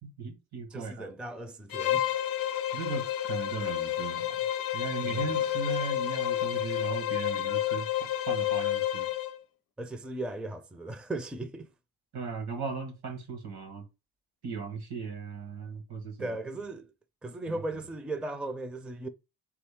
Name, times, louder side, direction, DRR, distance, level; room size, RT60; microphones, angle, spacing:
voice 1, 0.0-1.1 2.7-4.4 4.7-7.9 8.3-9.1 12.1-13.8 14.4-16.4 17.5-17.6, right 5 dB, 75° right, 1.7 m, -37 dB
voice 2, 0.7-2.1 5.0-5.4 9.8-11.7 16.2-16.9 17.2-19.1, right 2 dB, ahead, 0.4 m, -37 dB
Bowed string instrument, 1.7-9.4, left 12 dB, 60° left, 0.6 m, -30 dB
4.0 x 3.4 x 3.6 m
cardioid pair, 85°, 38 cm